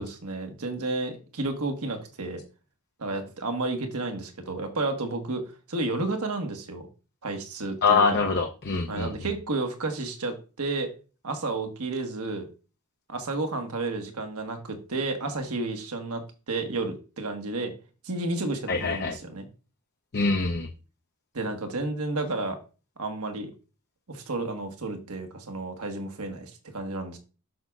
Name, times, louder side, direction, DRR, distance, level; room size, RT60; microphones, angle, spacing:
voice 1, 0.0-2.4 3.0-5.4 5.7-6.9 7.2-8.2 8.9-10.9 11.2-12.5 13.1-17.7 18.0-19.5 21.3-22.6 23.0-23.5 24.1-27.2, right 2 dB, 80° right, 4 dB, 1.3 m, -31 dB
voice 2, 7.8-9.1 18.7-19.1 20.1-20.7, left 4 dB, 50° left, 3 dB, 0.6 m, -24 dB
7.7 x 6.2 x 2.4 m, 0.35 s
head